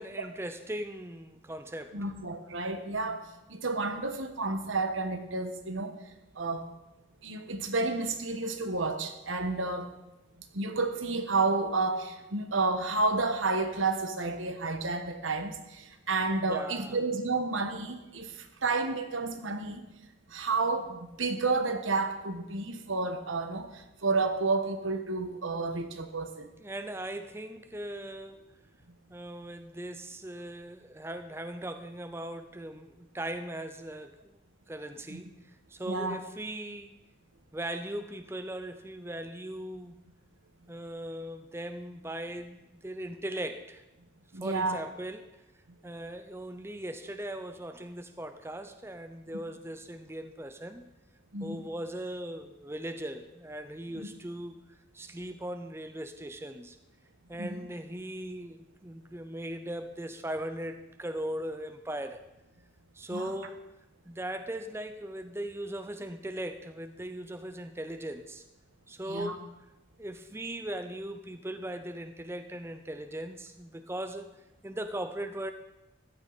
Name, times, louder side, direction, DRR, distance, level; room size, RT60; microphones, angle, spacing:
voice 1, 0.0-2.0 16.5-17.0 26.6-28.4 29.1-34.4 34.7-35.3 35.7-37.0 37.5-40.0 40.7-43.8 44.4-45.3 45.8-50.9 51.4-54.6 54.9-56.8 57.3-62.2 62.9-63.6 64.1-68.4 68.9-69.5 70.0-74.3 74.6-75.5, right 1 dB, 10° right, 9 dB, 0.5 m, -39 dB
voice 2, 1.9-5.9 6.4-6.7 7.2-9.9 10.5-19.8 20.3-26.5 35.1-35.2 35.9-36.2 44.3-44.8 51.3-51.6 57.4-57.6 63.1-63.3 69.1-69.4, right 3 dB, 80° right, 8 dB, 1.3 m, -31 dB
14.5 x 12.0 x 4.1 m, 0.96 s
head